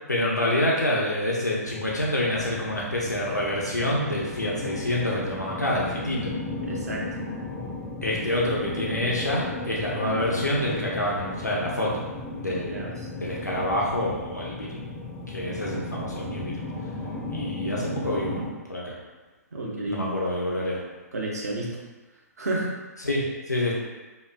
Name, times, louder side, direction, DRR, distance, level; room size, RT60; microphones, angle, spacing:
voice 1, 0.1-6.3 8.0-12.0 12.4-12.9 13.2-14.8 15.3-16.6 17.3-18.4 18.7-19.0 19.9-20.8 23.0-23.8, left 1 dB, 90° left, -4 dB, 0.5 m, -27 dB
sound 1, 1.6-18.5, left 2 dB, 10° left, 0.4 m, -35 dB
voice 2, 6.6-7.1 12.6-12.9 19.5-20.1 21.1-21.8 22.4-22.7, right 2 dB, 70° right, -2 dB, 0.6 m, -30 dB
3.0 x 2.4 x 2.2 m, 1.2 s
figure-of-eight pair, 120°, 9 cm